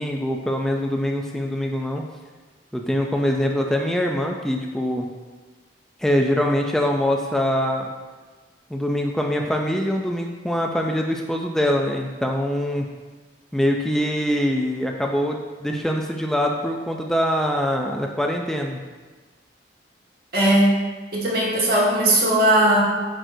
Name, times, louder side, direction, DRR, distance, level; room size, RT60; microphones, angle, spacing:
voice 1, 0.0-2.0 2.7-5.1 6.0-7.9 8.7-12.9 13.5-18.8, equal, 5° left, 1 dB, 0.4 m, -23 dB
voice 2, 20.3-20.7 21.1-22.8, right 1 dB, 60° right, -5 dB, 1.8 m, -18 dB
7.8 x 6.3 x 2.6 m, 1.3 s
head